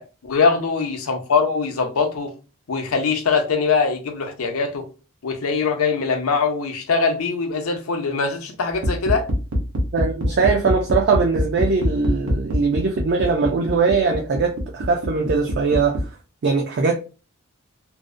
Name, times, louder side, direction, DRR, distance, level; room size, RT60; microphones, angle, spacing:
voice 1, 0.0-2.3 2.7-4.9 5.2-9.3, left 5 dB, 85° left, 0.6 m, -22 dB
sound 1, 8.7-16.1, equal, 85° right, 0.8 m, -24 dB
voice 2, 9.9-16.0 16.4-17.0, right 4 dB, 50° right, 0.3 m, -21 dB
2.6 x 2.0 x 2.4 m
head